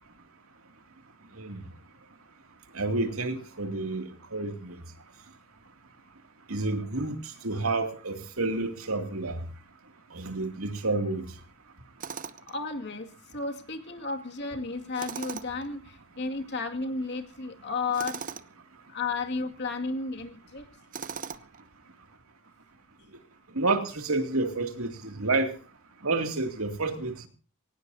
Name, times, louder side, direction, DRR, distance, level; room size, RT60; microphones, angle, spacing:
voice 1, 2.7-4.8 6.5-7.2 7.4-9.4 10.1-11.3 23.6-25.5 26.0-27.3, right 3 dB, 85° right, 2.6 m, -29 dB
Tools, 12.0-12.6 14.9-15.7 17.9-18.5 20.9-21.6, right 6 dB, 40° right, 0.8 m, -38 dB
voice 2, 12.5-18.3 18.9-20.7, left 3 dB, 55° left, 2.3 m, -33 dB
23.0 x 18.5 x 2.8 m
head